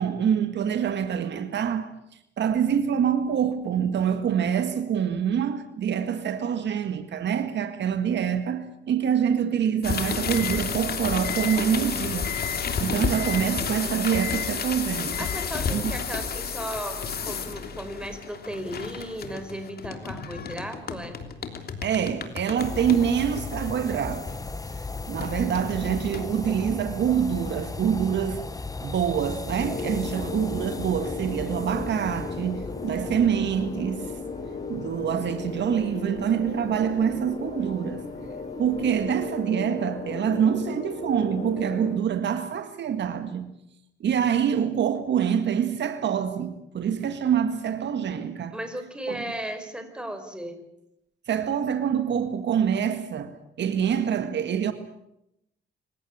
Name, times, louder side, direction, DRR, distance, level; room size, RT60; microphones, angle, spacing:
voice 1, 0.0-1.9 2.4-12.3 12.8-15.3 15.7-15.9 21.8-24.3 25.1-28.4 28.8-34.1 34.7-38.1 38.6-43.5 44.0-48.6 49.1-49.2 51.3-54.7, right 8 dB, 65° right, 1.8 m, -26 dB
sound 1, 9.8-24.7 25.2-26.6, left 6 dB, 50° left, 3.2 m, -31 dB
voice 2, 15.2-21.2 48.5-50.6, right 1 dB, 5° right, 4.9 m, -35 dB
sound 2, 22.6-39.4, left 3 dB, 15° left, 1.3 m, -37 dB
sound 3, 29.6-42.0, left 4 dB, 35° left, 4.3 m, -36 dB
25.5 x 16.5 x 8.8 m
cardioid pair, 90°, 20 cm